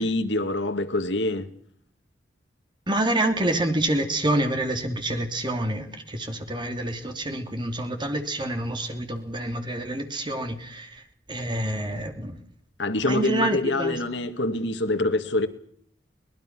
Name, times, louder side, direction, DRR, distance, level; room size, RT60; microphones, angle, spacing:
voice 1, 0.0-1.5 12.8-15.5, left 2 dB, 75° left, 1.9 m, -25 dB
voice 2, 2.9-11.0 11.3-12.4 13.0-14.0, right 1 dB, 25° right, 2.9 m, -27 dB
23.0 x 20.0 x 6.1 m
head